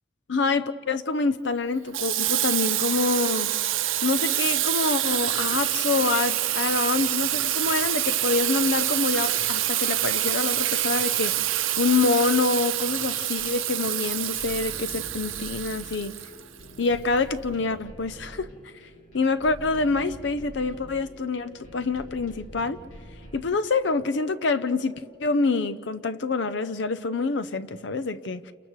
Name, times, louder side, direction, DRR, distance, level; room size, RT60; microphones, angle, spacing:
voice 1, 0.3-3.5 4.0-11.3 11.8-16.1 16.8-18.5 19.1-22.8 23.3-28.5, left 4 dB, 60° left, 0.6 m, -26 dB
Water tap faucet / Sink (filling or washing), 1.9-16.7, right 13 dB, 85° right, 0.7 m, -26 dB
sound 1, 13.4-23.4, equal, 85° left, 2.7 m, -45 dB
29.5 x 29.5 x 3.2 m
head